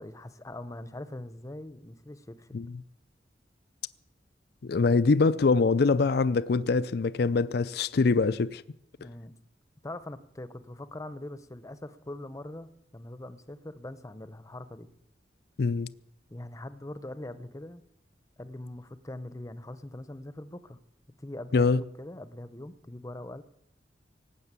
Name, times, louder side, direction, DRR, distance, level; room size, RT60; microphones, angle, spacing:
voice 1, 0.0-2.6 9.0-9.3 9.8-14.9 16.3-17.8 18.4-20.8 21.2-23.4, left 1 dB, 20° left, 0.8 m, -42 dB
voice 2, 4.6-8.6 15.6-15.9 21.5-21.8, left 4 dB, 65° left, 0.5 m, -24 dB
18.0 x 8.1 x 8.3 m
head